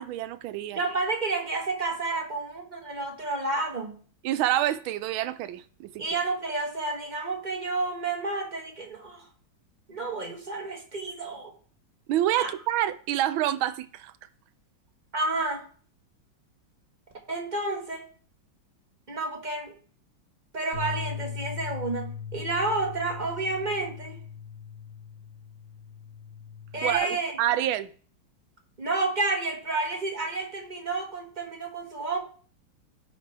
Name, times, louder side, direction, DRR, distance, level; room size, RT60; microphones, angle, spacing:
voice 1, 0.0-0.8 4.2-6.0 12.1-14.1 26.8-27.9, right 12 dB, 85° right, 1.4 m, -27 dB
voice 2, 0.7-4.0 6.0-9.2 9.9-11.5 12.4-12.5 15.1-15.6 17.3-18.0 19.1-19.7 20.5-24.2 26.7-27.4 28.8-32.2, right 3 dB, 25° right, 1.4 m, -30 dB
Bass guitar, 20.7-27.0, left 7 dB, 50° right, 3.2 m, -39 dB
15.0 x 5.2 x 3.3 m
omnidirectional pair, 2.2 m